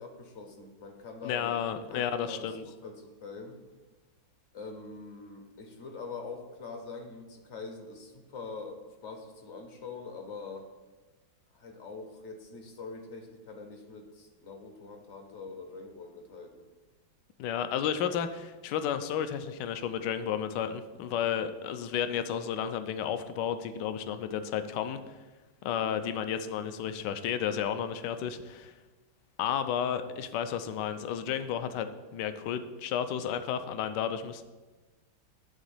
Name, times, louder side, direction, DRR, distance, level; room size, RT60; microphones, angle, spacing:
voice 1, 0.0-1.6 1.9-3.6 4.5-10.7 11.5-16.7 25.8-26.1, left 4 dB, 50° left, 4 dB, 0.9 m, -44 dB
voice 2, 1.2-2.6 17.4-25.0 25.6-28.7 29.4-34.4, left 8 dB, 70° left, 10 dB, 1.1 m, -32 dB
9.0 x 4.0 x 7.0 m, 1.2 s
omnidirectional pair, 2.2 m